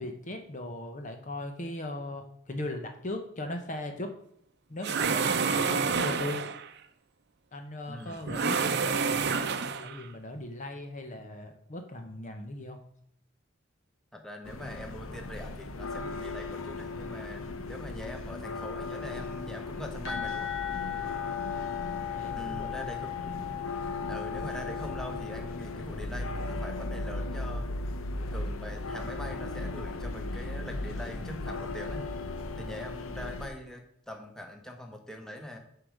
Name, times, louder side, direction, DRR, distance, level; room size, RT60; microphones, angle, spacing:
voice 1, 0.0-4.1 4.7-6.4 7.5-12.8 21.0-21.3 22.1-22.9, left 1 dB, 40° left, 5 dB, 0.9 m, -38 dB
sound 1, 4.8-6.7 8.3-10.0, right 5 dB, 55° right, 0.7 m, -28 dB
voice 2, 7.9-8.2 14.1-20.5 22.3-23.5 24.1-27.7 28.3-32.1 32.5-35.6, left 1 dB, 5° left, 3 dB, 1.3 m, -43 dB
sound 2, 14.4-33.5, left 2 dB, 90° left, 0.8 m, -37 dB
sound 3, 20.0-25.6, left 11 dB, 65° left, 2.4 m, -37 dB
9.9 x 4.8 x 6.4 m, 0.70 s
head